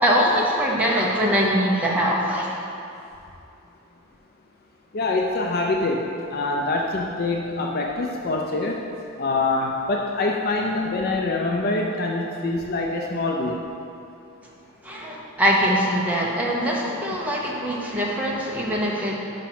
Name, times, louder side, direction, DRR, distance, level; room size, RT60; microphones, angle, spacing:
voice 1, 0.0-2.5 14.8-19.2, equal, 5° right, -4 dB, 0.8 m, -22 dB
voice 2, 4.9-8.8 9.2-13.6, left 2 dB, 45° left, 0 dB, 0.4 m, -25 dB
5.7 x 5.1 x 5.9 m, 2.6 s
head